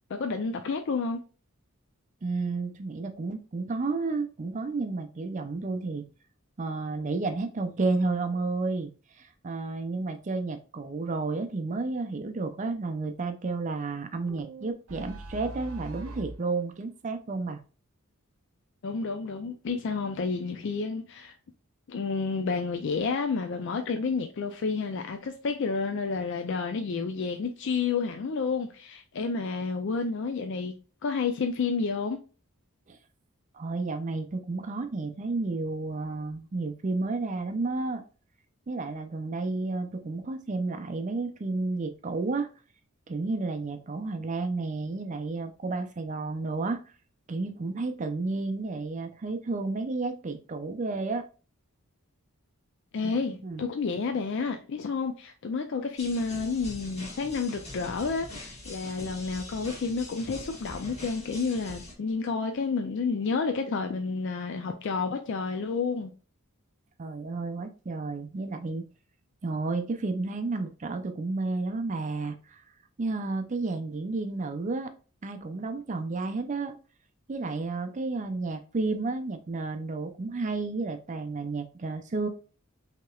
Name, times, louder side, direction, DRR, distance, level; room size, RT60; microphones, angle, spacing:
voice 1, 0.1-1.2 18.8-21.3 21.9-30.7 31.0-32.2 52.9-66.1, left 4 dB, 60° left, 0.4 m, -30 dB
voice 2, 2.2-6.0 6.6-8.9 9.2-17.6 32.9-33.0 33.5-38.0 38.7-42.5 43.1-46.8 47.3-51.3 53.0-53.1 53.4-53.6 67.0-68.8 69.4-72.6 73.0-74.9 75.2-76.8 77.3-82.3, right 3 dB, 35° right, 0.4 m, -31 dB
sound 1, 14.3-16.4, right 2 dB, 85° right, 0.8 m, -41 dB
sound 2, 56.0-61.9, left 2 dB, 30° left, 1.3 m, -43 dB
6.1 x 2.9 x 2.3 m
head